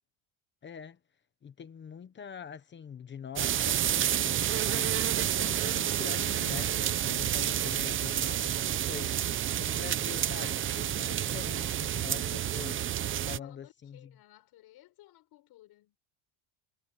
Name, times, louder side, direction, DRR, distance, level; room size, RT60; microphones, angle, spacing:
voice 1, 0.6-1.0 1.4-4.4 4.7-12.9 13.3-14.2, left 8 dB, 25° left, 1.1 m, -44 dB
sound 1, 3.4-13.4, right 11 dB, 25° right, 0.7 m, -29 dB
voice 2, 13.0-16.0, left 15 dB, 50° left, 4.8 m, -57 dB
cardioid pair, 160°, 47 cm